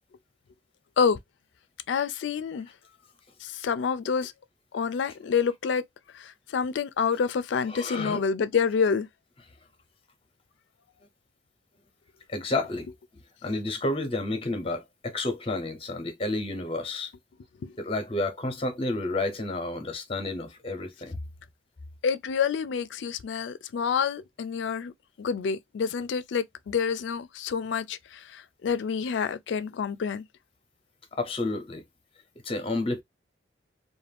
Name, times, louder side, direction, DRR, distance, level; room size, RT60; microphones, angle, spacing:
voice 1, 1.9-2.7 3.4-4.3 4.7-5.8 6.1-9.1 17.6-17.7 22.0-24.9 25.2-30.2, left 6 dB, 75° left, 0.3 m, -28 dB
voice 2, 7.7-8.2 12.3-12.9 13.4-17.1 17.8-21.2 31.1-31.8 32.4-33.0, left 2 dB, 30° left, 0.6 m, -30 dB
2.4 x 2.2 x 3.3 m
head